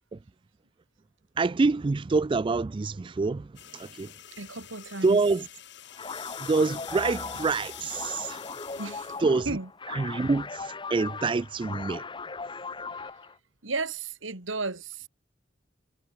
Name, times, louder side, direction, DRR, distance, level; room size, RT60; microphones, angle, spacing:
voice 1, 1.4-3.5 3.7-4.1 5.0-5.5 6.4-8.4 9.2-9.6 9.9-12.0, right 3 dB, 25° right, 0.3 m, -26 dB
sound 1, 3.6-9.3, left 12 dB, 65° left, 4.2 m, -45 dB
voice 2, 4.4-5.2 8.7-9.1 9.5-9.7 12.9-13.0 13.6-15.1, right 3 dB, 90° right, 2.8 m, -34 dB
sound 2, 5.9-13.3, left 4 dB, 25° left, 1.1 m, -39 dB
sound 3, 6.9-8.4, equal, ahead, 2.6 m, -43 dB
head